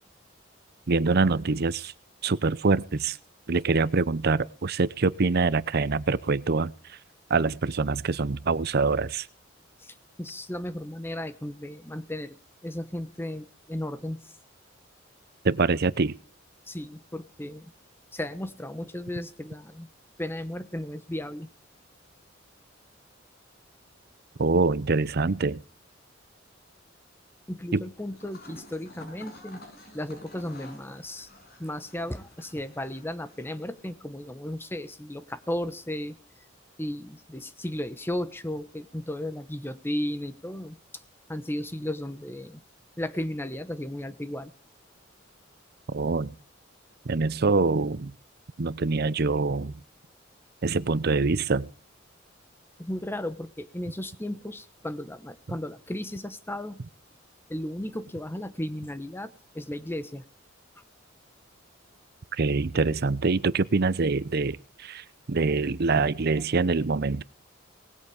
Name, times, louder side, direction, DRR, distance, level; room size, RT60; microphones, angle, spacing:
voice 1, 0.9-1.9 2.2-3.2 3.5-6.7 7.3-9.3 15.4-16.1 24.4-25.6 27.7-27.8 45.9-46.3 47.1-48.1 48.6-49.7 50.6-51.7 62.4-67.2, right 4 dB, 55° right, 18 dB, 0.7 m, -25 dB
voice 2, 9.8-12.4 12.6-14.2 16.7-17.7 18.1-19.9 20.2-21.5 27.5-29.6 29.9-31.3 31.6-36.2 36.8-40.8 41.3-42.6 43.0-44.5 52.8-56.8 57.5-60.2 66.0-66.1, left 1 dB, 10° left, 12 dB, 1.1 m, -35 dB
sound 1, 28.1-33.9, left 2 dB, 55° left, 6.0 m, -49 dB
19.0 x 8.3 x 7.1 m, 0.41 s
head